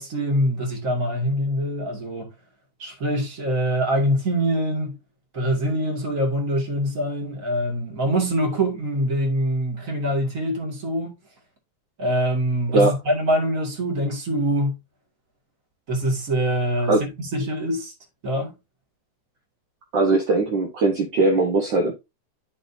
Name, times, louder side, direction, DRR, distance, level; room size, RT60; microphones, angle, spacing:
voice 1, 0.0-2.3 2.8-5.0 5.3-11.1 12.0-14.7 15.9-17.0 17.3-17.9 18.2-18.5, equal, 30° right, 2.1 m, -24 dB
voice 2, 19.9-21.9, right 3 dB, 55° right, 1.4 m, -20 dB
12.0 x 4.1 x 2.7 m
omnidirectional pair, 3.6 m